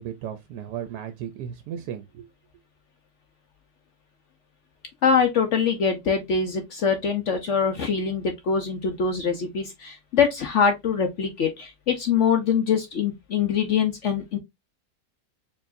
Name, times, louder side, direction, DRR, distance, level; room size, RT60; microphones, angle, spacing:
voice 1, 0.0-2.3, right 9 dB, 75° right, 1.1 m, -35 dB
voice 2, 5.0-14.4, left 6 dB, 60° left, 0.8 m, -23 dB
4.5 x 3.0 x 2.5 m
omnidirectional pair, 1.8 m